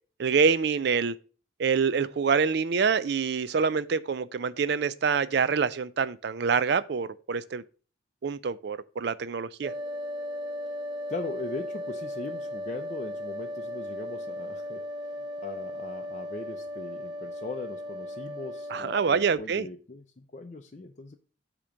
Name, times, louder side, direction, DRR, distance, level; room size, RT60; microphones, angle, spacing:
voice 1, 0.2-1.1 1.6-7.6 8.2-9.7 18.7-19.7, right 5 dB, 60° right, 0.4 m, -26 dB
sound 1, 9.6-19.4, left 1 dB, 25° right, 0.7 m, -36 dB
voice 2, 11.1-21.2, left 3 dB, 40° left, 0.5 m, -40 dB
8.6 x 3.0 x 6.3 m
head